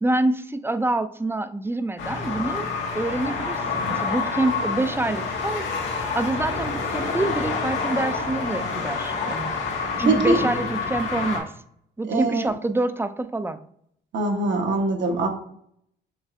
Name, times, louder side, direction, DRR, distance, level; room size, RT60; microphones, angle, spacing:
voice 1, 0.0-5.6 6.1-9.5 10.0-11.5 12.0-13.6, right 2 dB, 10° right, 11 dB, 0.4 m, -26 dB
sound 1, 2.0-11.4, left 4 dB, 80° left, 1.7 m, -28 dB
voice 2, 10.0-10.6 12.1-12.4 14.1-15.3, right 2 dB, 65° right, 3 dB, 1.1 m, -22 dB
6.2 x 3.1 x 2.5 m, 0.69 s
cardioid pair, 90°, 20 cm